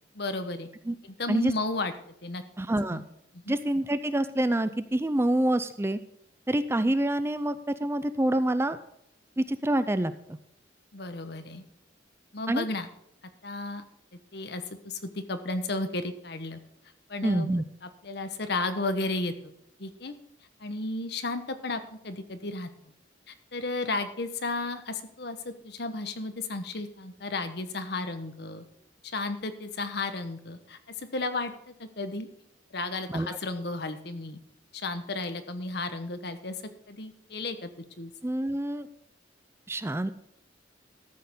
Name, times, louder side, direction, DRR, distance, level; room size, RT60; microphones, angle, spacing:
voice 1, 0.1-0.7 1.0-1.9 2.2-2.4 2.9-3.0 3.4-3.6 10.9-11.6 12.3-12.9 13.4-13.8 14.3-16.6 17.1-17.5 17.8-19.5 19.8-20.1 20.6-22.9 23.3-28.6 29.0-32.3 32.7-34.4 34.7-36.6 36.9-37.7 38.0-38.1, left 2 dB, 60° left, 9 dB, 1.1 m, -33 dB
voice 2, 2.6-3.0 3.5-6.0 6.5-7.5 7.8-8.8 9.4-10.4 12.5-12.6 17.2-17.6 33.1-33.4 38.2-38.9 39.7-40.1, right 1 dB, 15° right, 12 dB, 0.4 m, -26 dB
13.5 x 6.4 x 5.4 m, 0.76 s
head